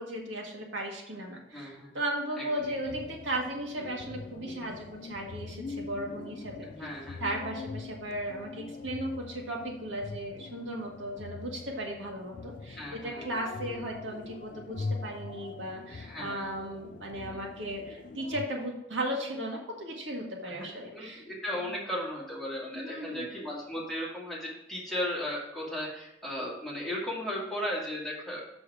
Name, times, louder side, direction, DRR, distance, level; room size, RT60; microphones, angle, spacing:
voice 1, 0.0-6.7 7.2-21.2 22.7-23.3, right 1 dB, 80° right, 0 dB, 1.7 m, -36 dB
voice 2, 1.5-2.0 2.4-2.8 6.6-7.2 12.8-13.2 16.0-16.5 20.5-20.7 20.9-28.4, left 1 dB, ahead, -6 dB, 2.3 m, -36 dB
sound 1, 2.6-18.5, left 4 dB, 45° left, 0.3 m, -43 dB
6.8 x 6.1 x 4.9 m, 0.88 s
head